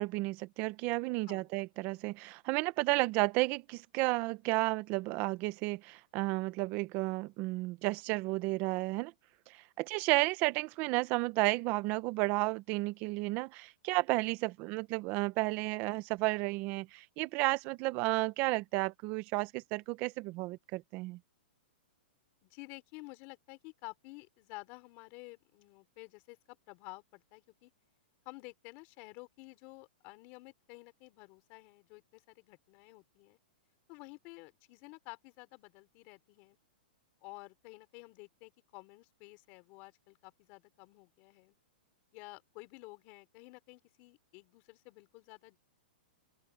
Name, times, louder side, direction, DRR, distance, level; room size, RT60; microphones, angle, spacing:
voice 1, 0.0-9.1 9.5-21.2, right 22 dB, 30° right, 0.9 m, -32 dB
voice 2, 22.4-27.7 28.3-33.4 33.9-36.6 37.2-41.5 42.1-45.6, left 25 dB, 35° left, 3.6 m, -52 dB
open air
hypercardioid pair, 155°, 6 cm